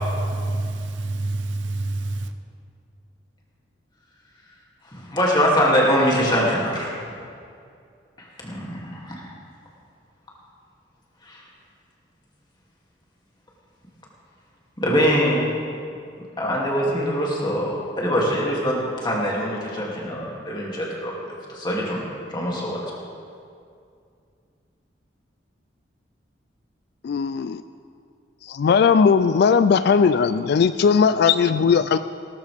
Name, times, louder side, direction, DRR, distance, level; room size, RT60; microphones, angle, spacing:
voice 1, 0.1-2.3, right 2 dB, 85° right, 8 dB, 0.8 m, -27 dB
voice 2, 4.9-6.9 8.4-9.1 11.3-11.4 14.8-15.4 16.4-21.1 21.5-22.0 22.3-22.8, equal, 25° left, -4 dB, 2.6 m, -23 dB
voice 3, 27.0-27.6 28.4-32.0, left 6 dB, 60° left, 12 dB, 0.3 m, -18 dB
18.0 x 13.0 x 3.5 m, 2.4 s
head